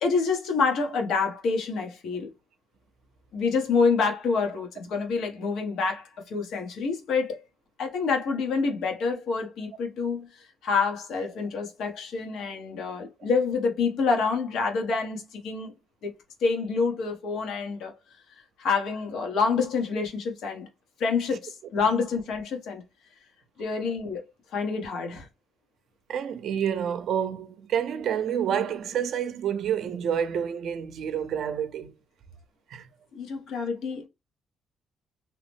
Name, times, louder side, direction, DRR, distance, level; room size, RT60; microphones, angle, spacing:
voice 1, 0.0-2.3 3.3-7.4 7.8-15.7 16.0-16.1 16.4-18.0 18.3-20.7 21.0-22.8 23.6-24.2 24.5-25.3 33.1-34.1, left 4 dB, 75° left, 1.0 m, -27 dB
voice 2, 26.1-31.9 32.7-32.9, right 8 dB, 70° right, 0.5 m, -28 dB
2.8 x 2.0 x 3.3 m
cardioid pair, 105°, 0 cm